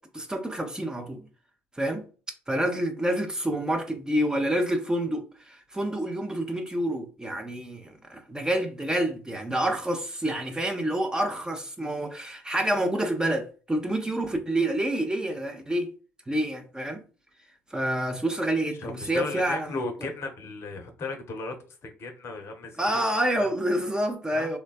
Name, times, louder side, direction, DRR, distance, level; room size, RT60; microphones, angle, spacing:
voice 1, 0.1-1.2 1.8-2.1 2.5-15.9 16.3-17.0 17.7-19.8 22.8-24.6, right 1 dB, 10° right, 0.5 m, -28 dB
voice 2, 18.8-21.5 21.8-23.0 23.4-23.5 24.3-24.5, left 3 dB, 40° left, 0.6 m, -36 dB
3.2 x 2.2 x 2.3 m
figure-of-eight pair, 55°, 7 cm